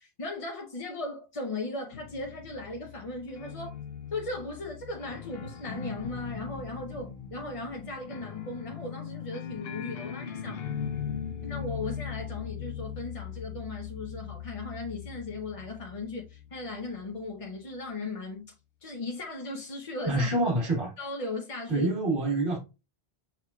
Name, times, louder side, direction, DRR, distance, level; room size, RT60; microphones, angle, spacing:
voice 1, 0.0-3.8 4.1-10.6 11.4-18.5 18.8-20.3 21.0-21.9, left 2 dB, 40° left, 0.6 m, -37 dB
sound 1, 1.9-17.3, left 8 dB, 75° left, 0.9 m, -39 dB
voice 2, 20.0-20.9 21.7-22.6, right 2 dB, 60° right, 1.5 m, -26 dB
6.1 x 3.6 x 2.2 m
omnidirectional pair, 1.0 m